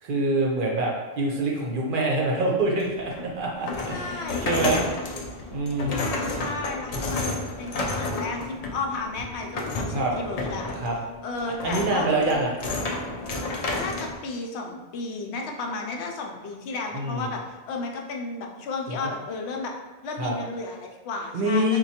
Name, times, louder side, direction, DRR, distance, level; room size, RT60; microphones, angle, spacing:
voice 1, 0.0-4.8 5.5-6.1 9.9-10.1 10.8-10.9 11.6-12.5 16.9-17.2 18.9-19.0 20.2-20.3 21.3-21.8, right 2 dB, 60° right, -2 dB, 0.7 m, -25 dB
sound 1, 2.8-14.1, left 2 dB, 55° left, 0.4 m, -31 dB
voice 2, 3.9-4.5 5.9-7.2 7.6-10.7 11.2-12.3 13.8-19.7 20.0-21.8, left 3 dB, 85° left, 1 dB, 0.8 m, -33 dB
4.3 x 2.2 x 2.8 m, 1.2 s
omnidirectional pair, 1.1 m